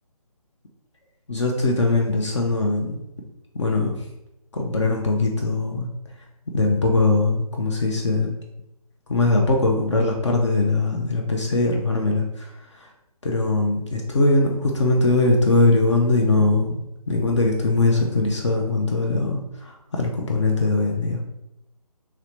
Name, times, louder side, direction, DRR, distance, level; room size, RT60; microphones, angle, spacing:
voice 1, 1.3-3.0 3.5-4.1 4.5-5.9 6.5-8.3 9.1-12.5 13.2-21.2, left 2 dB, 50° left, 1 dB, 0.5 m, -21 dB
3.0 x 2.8 x 3.0 m, 0.87 s
figure-of-eight pair, 155°, 20 cm